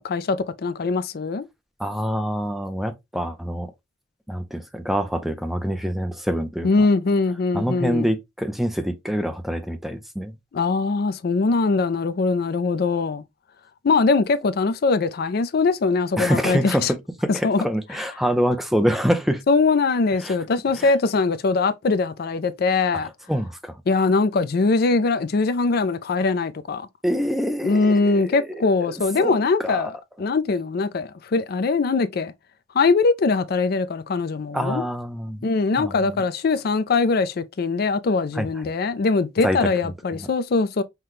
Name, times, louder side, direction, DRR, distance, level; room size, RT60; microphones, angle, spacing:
voice 1, 0.0-1.5 6.6-8.1 10.5-13.2 13.8-16.9 17.3-17.7 19.5-23.1 23.9-26.9 27.6-32.3 32.7-34.8 35.4-40.8, left 4 dB, 55° left, 0.4 m, -22 dB
voice 2, 1.8-3.7 4.3-6.9 7.5-10.3 16.2-19.4 20.2-20.3 20.8-20.9 23.3-23.7 27.0-28.6 28.9-29.4 29.6-29.9 34.5-35.5 35.8-36.2 38.4-38.5 39.4-40.3, equal, ahead, 0.5 m, -26 dB
5.7 x 2.2 x 3.1 m
head